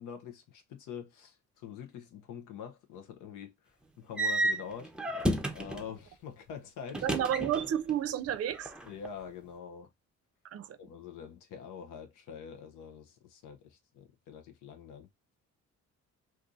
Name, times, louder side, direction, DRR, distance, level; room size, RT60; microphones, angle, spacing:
voice 1, 0.0-4.9 5.5-7.1 8.9-9.9 10.8-15.1, left 7 dB, 85° left, 0.7 m, -45 dB
sound 1, 4.2-5.9 6.9-8.0 8.2-9.1, right 1 dB, 5° right, 0.6 m, -32 dB
voice 2, 7.0-8.7 10.5-10.8, right 10 dB, 55° right, 0.5 m, -31 dB
2.7 x 2.5 x 3.7 m
cardioid pair, 90°, 30 cm